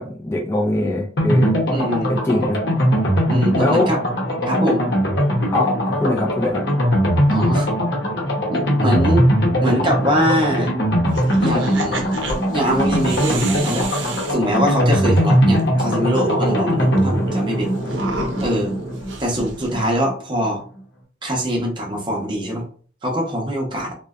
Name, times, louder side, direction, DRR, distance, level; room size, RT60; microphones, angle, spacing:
voice 1, 0.0-1.5 2.1-2.6 3.5-3.9 5.5-6.6, left 2 dB, 15° left, -1 dB, 0.4 m, -22 dB
sound 1, 1.2-19.8 20.1-20.2 20.4-20.5, equal, 65° left, 0.8 m, -20 dB
voice 2, 1.7-2.2 3.3-4.0 4.5-4.8 7.3-7.7 8.5-9.3 9.6-10.7 11.4-12.2 12.5-17.7 18.4-18.7 19.2-20.6 21.2-22.7 23.0-23.9, equal, 25° right, -1 dB, 0.7 m, -23 dB
sound 2, 11.1-15.2 15.6-15.7 15.9-20.0, right 1 dB, 85° right, 0.6 m, -30 dB
2.5 x 2.1 x 2.3 m, 0.43 s
head